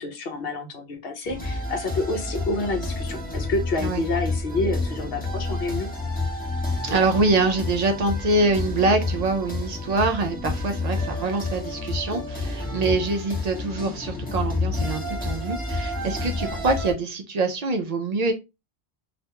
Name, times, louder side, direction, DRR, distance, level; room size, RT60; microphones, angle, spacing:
voice 1, 0.0-5.9, left 2 dB, 65° left, 0.9 m, -28 dB
sound 1, 1.3-16.9, left 2 dB, 10° left, 0.6 m, -29 dB
voice 2, 6.8-18.3, right 3 dB, 60° right, 0.4 m, -24 dB
2.4 x 2.2 x 2.8 m
omnidirectional pair, 1.1 m